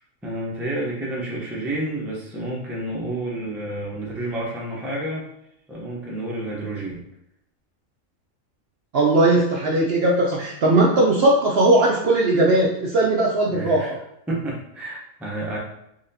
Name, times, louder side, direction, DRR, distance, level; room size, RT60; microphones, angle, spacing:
voice 1, 0.2-5.3 5.7-7.0 13.5-14.0 14.3-15.6, right 1 dB, ahead, -4 dB, 0.5 m, -30 dB
voice 2, 8.9-14.0, right 2 dB, 60° right, -2 dB, 0.7 m, -18 dB
4.0 x 3.0 x 2.7 m, 0.79 s
omnidirectional pair, 1.4 m